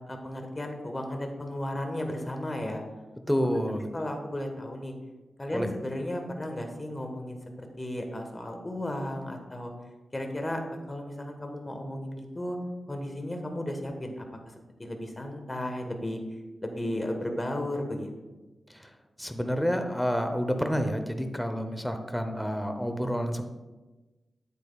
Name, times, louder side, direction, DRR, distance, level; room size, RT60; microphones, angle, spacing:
voice 1, 0.0-2.8 3.9-4.9 5.4-7.4 7.8-9.7 10.1-10.6 10.9-12.6 12.9-14.5 14.8-16.2 16.6-18.1, left 1 dB, 25° left, 4 dB, 1.4 m, -34 dB
voice 2, 3.3-4.0 5.5-5.7 18.7-18.9 19.2-23.4, equal, 5° left, 6 dB, 0.8 m, -29 dB
8.8 x 8.4 x 2.4 m, 1.2 s
cardioid pair, 70°, 0 cm